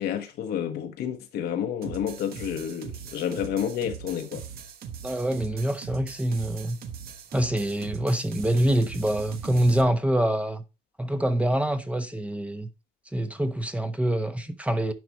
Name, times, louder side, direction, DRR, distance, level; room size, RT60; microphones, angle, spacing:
voice 1, 0.0-4.5, left 9 dB, 70° left, 1.3 m, -30 dB
sound 1, 1.8-9.8, right 7 dB, 65° right, 1.2 m, -40 dB
voice 2, 5.0-6.8 7.3-10.6 11.0-12.7 13.1-14.9, right 1 dB, 10° right, 0.9 m, -25 dB
11.0 x 4.9 x 3.1 m
cardioid pair, 110°, 17 cm